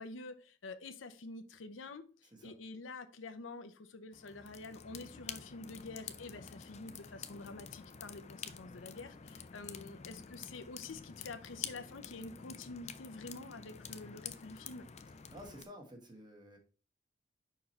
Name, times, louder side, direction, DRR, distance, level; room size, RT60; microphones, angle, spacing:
voice 1, 0.0-14.9, left 3 dB, 90° left, 0.7 m, -48 dB
sound 1, 4.1-15.6, left 7 dB, 35° left, 0.5 m, -49 dB
voice 2, 15.3-16.6, equal, 25° right, 1.3 m, -51 dB
5.4 x 4.7 x 4.2 m
head